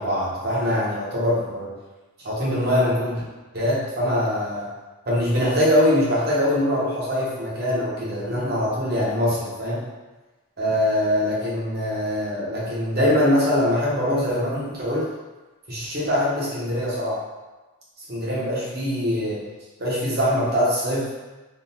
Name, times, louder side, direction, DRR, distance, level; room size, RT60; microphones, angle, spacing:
voice 1, 0.0-1.7 2.2-3.2 3.5-4.7 5.0-9.8 10.6-15.1 15.7-17.2 18.1-19.4 19.8-21.1, left 1 dB, 45° right, -6 dB, 0.9 m, -23 dB
3.6 x 2.3 x 2.7 m, 1.2 s
head